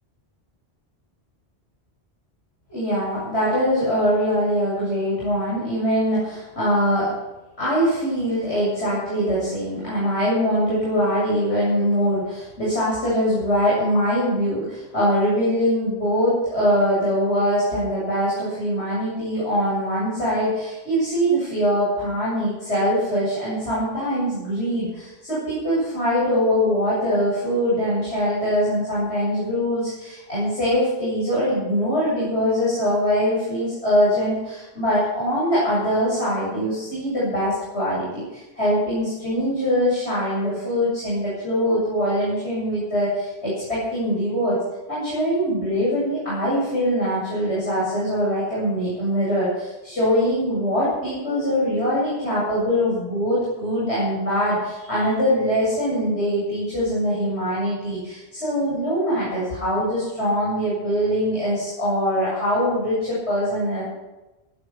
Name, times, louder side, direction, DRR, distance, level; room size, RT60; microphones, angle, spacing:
voice 1, 2.7-7.1 7.6-44.6 44.9-63.8, equal, 85° left, -8 dB, 8.4 m, -23 dB
18.5 x 11.5 x 5.9 m, 1.0 s
omnidirectional pair, 1.1 m